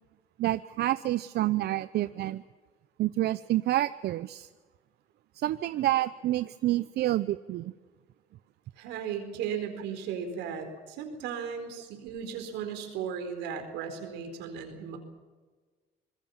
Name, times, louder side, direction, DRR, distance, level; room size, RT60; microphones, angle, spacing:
voice 1, 0.4-2.4 3.0-4.5 5.4-7.7, right 15 dB, 70° right, 15 dB, 0.6 m, -28 dB
voice 2, 8.8-15.0, right 7 dB, 90° right, 6 dB, 4.5 m, -36 dB
25.5 x 21.0 x 7.3 m, 1.4 s
supercardioid pair, 80°, 18 cm